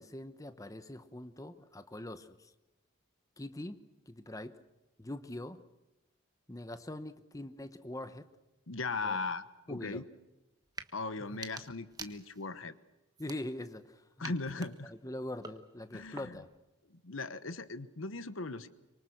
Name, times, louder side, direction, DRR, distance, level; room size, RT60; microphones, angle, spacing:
voice 1, 0.0-2.5 3.4-4.6 5.0-5.6 6.5-8.3 9.0-9.2 9.7-10.0 13.2-16.5, left 1 dB, 15° left, 11 dB, 1.0 m, -43 dB
voice 2, 8.7-10.1 10.9-12.7 14.2-14.9 15.9-16.4 16.9-18.7, left 3 dB, 80° left, 13 dB, 1.2 m, -38 dB
sound 1, 10.6-10.9 11.3-12.6 13.1-13.8 14.2-16.6, right 4 dB, 20° right, 1.3 m, -49 dB
25.0 x 24.0 x 6.5 m, 1.0 s
head